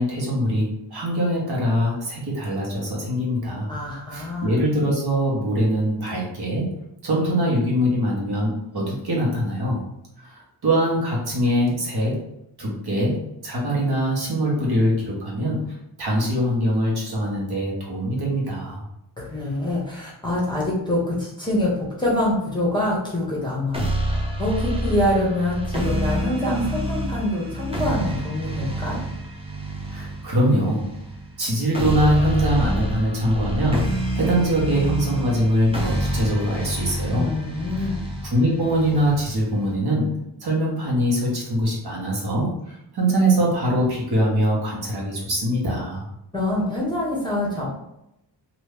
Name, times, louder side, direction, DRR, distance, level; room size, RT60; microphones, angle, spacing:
voice 1, 0.0-3.7 4.1-6.7 7.0-9.8 10.2-12.2 12.6-15.6 16.0-18.8 29.9-30.9 31.4-37.3 38.2-46.0, equal, 55° right, -3 dB, 1.3 m, -23 dB
voice 2, 3.7-4.6 19.2-21.7 22.0-23.8 24.4-29.0 37.1-38.0 46.3-47.7, left 1 dB, 10° left, -5 dB, 0.9 m, -25 dB
sound 1, 23.7-39.7, right 1 dB, 15° right, 0.6 m, -28 dB
3.0 x 2.6 x 3.3 m, 0.83 s
wide cardioid pair, 120°, 45 cm